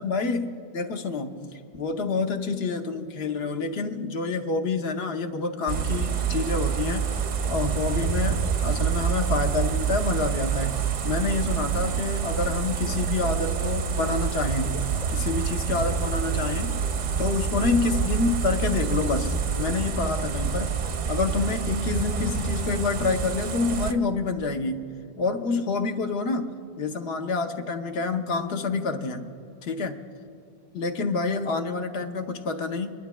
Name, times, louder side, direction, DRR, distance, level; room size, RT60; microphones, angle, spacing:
voice 1, 0.0-7.1 7.4-14.8 15.1-16.7 17.2-20.7 21.1-24.8 25.2-26.5 26.8-29.3 29.6-30.0 30.7-32.9, left 4 dB, 75° left, 6 dB, 1.0 m, -28 dB
sound 1, 5.7-23.9, right 7 dB, 50° right, 0.5 m, -27 dB
29.0 x 11.5 x 2.2 m, 2.6 s
omnidirectional pair, 1.1 m